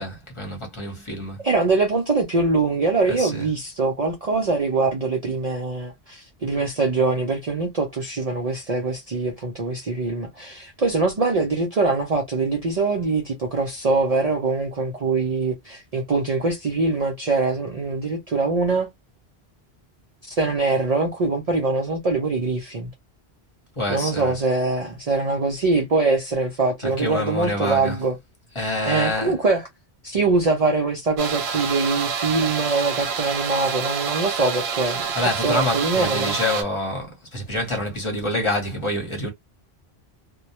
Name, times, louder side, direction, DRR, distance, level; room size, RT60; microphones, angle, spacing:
voice 1, 0.0-1.4 3.1-3.5 23.8-24.4 26.8-28.1 28.5-29.4 35.1-39.3, left 1 dB, 30° left, 0.9 m, -27 dB
voice 2, 1.4-18.9 20.2-22.9 23.9-28.2 28.9-29.7 30.0-35.0 35.4-36.4, right 3 dB, 50° right, 0.5 m, -23 dB
sound 1, 31.2-36.6, right 6 dB, 80° right, 0.9 m, -27 dB
2.1 x 2.1 x 2.7 m
omnidirectional pair, 1.1 m